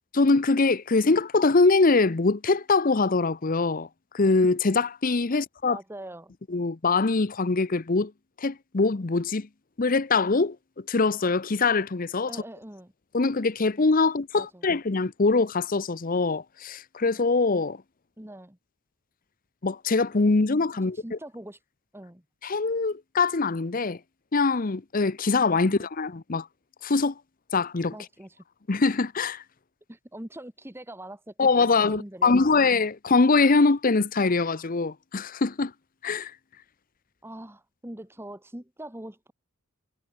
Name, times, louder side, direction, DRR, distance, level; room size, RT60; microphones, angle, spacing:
voice 1, 0.1-3.9 4.1-5.8 6.5-8.1 8.4-9.5 9.8-10.6 10.9-12.3 13.1-17.8 19.6-21.0 22.4-24.0 24.3-26.5 26.8-27.1 27.5-27.9 28.7-29.4 31.4-35.7 36.0-36.3, left 3 dB, 40° left, 0.7 m, -23 dB
voice 2, 5.3-6.3 12.2-12.9 14.3-14.7 18.2-18.6 20.8-21.6 21.9-22.2 25.6-25.9 27.9-28.4 29.9-32.6 37.2-39.3, right 1 dB, 10° right, 1.6 m, -43 dB
head